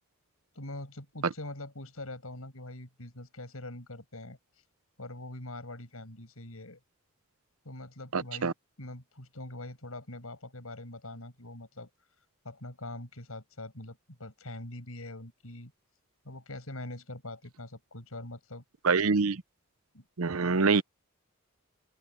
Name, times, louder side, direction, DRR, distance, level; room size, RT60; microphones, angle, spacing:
voice 1, 0.5-4.4 5.0-6.8 7.6-8.5 8.8-11.9 12.4-15.7 16.2-18.6 19.9-20.0, left 1 dB, 75° left, 6.1 m, -43 dB
voice 2, 8.1-8.5 18.8-19.4 20.2-20.8, right 4 dB, 75° right, 0.7 m, -25 dB
open air
head